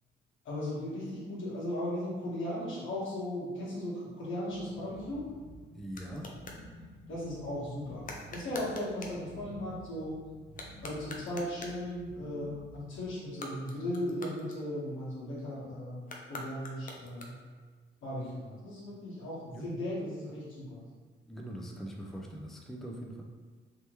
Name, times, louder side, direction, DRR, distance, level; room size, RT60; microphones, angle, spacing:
voice 1, 0.4-5.2 7.1-10.2 10.8-17.3 18.0-20.8, left 1 dB, 80° left, -8 dB, 1.5 m, -37 dB
sound 1, 4.5-13.0, right 2 dB, 40° right, 1.3 m, -52 dB
sound 2, 5.0-6.7 8.0-9.2 10.4-11.9 13.2-15.1 16.0-17.6, left 2 dB, 45° left, 0.6 m, -46 dB
voice 2, 5.7-6.3 19.5-19.7 21.3-23.2, right 1 dB, ahead, -1 dB, 0.4 m, -42 dB
3.3 x 2.9 x 3.1 m, 1.4 s
cardioid pair, 90°, 20 cm